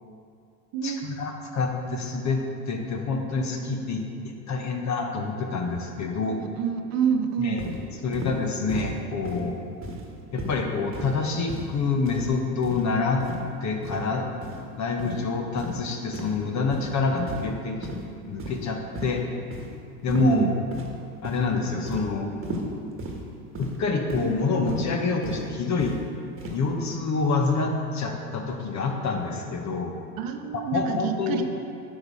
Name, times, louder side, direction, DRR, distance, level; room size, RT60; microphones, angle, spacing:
voice 1, 0.8-6.4 7.4-9.5 10.3-13.3 13.6-14.3 14.7-17.8 18.3-19.2 20.0-20.5 21.2-22.3 23.6-25.9 26.5-29.9 30.5-31.4, left 4 dB, 35° left, 3 dB, 1.2 m, -27 dB
voice 2, 6.2-7.6 15.0-15.1 20.1-20.5 30.2-31.4, right 7 dB, 45° right, 6 dB, 0.8 m, -27 dB
sound 1, 7.6-7.8 8.1-8.4 8.7-8.9 9.2-9.5 9.8-10.1 10.4-10.6 10.9-11.2 11.5-11.7 12.1-12.3 12.6-12.8 13.2-13.4 13.8-14.0 14.4-14.6 15.0-15.2 15.6-15.8 16.1-16.3 16.7-16.9 17.3-17.6 17.8-18.0 18.4-18.7 18.9-19.2 19.5-19.7 20.1-20.4 20.7-21.0 21.2-21.5 21.9-22.1 22.4-22.7 23.0-23.2 23.5-23.8 24.1-24.3 24.7-24.8 25.2-25.4 25.8-26.0 26.4-26.6, equal, 25° right, 1.5 m, -35 dB
9.7 x 5.5 x 4.9 m, 2.4 s
hypercardioid pair, 90°, 48 cm